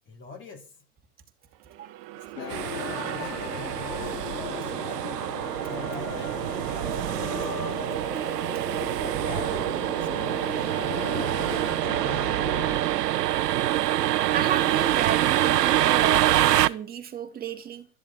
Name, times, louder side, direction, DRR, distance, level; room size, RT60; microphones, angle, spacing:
voice 1, 0.1-0.7 2.2-4.1 4.5-5.1 5.7-6.4 9.0-10.9 11.3-12.4, left 3 dB, 25° left, 2.9 m, -44 dB
sound 1, 1.5-6.2, right 17 dB, 40° right, 1.5 m, -43 dB
sound 2, 2.4-12.8, left 10 dB, 65° left, 3.0 m, -37 dB
sound 3, 2.5-16.7, right 13 dB, 75° right, 1.1 m, -26 dB
voice 2, 14.3-17.9, right 8 dB, 20° right, 2.5 m, -32 dB
13.5 x 7.4 x 8.6 m
hypercardioid pair, 135°, 48 cm